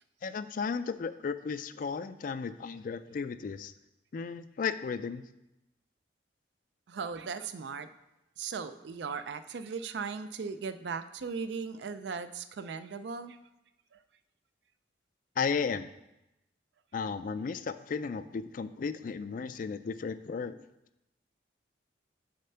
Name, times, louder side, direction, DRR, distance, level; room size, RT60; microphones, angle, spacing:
voice 1, 0.2-3.7 4.1-5.2 15.4-15.9 16.9-20.6, left 5 dB, 45° left, 13 dB, 0.3 m, -34 dB
voice 2, 6.9-7.9 8.4-13.4 13.9-14.0, right 5 dB, 65° right, 11 dB, 0.4 m, -38 dB
6.6 x 4.2 x 5.6 m, 0.90 s
head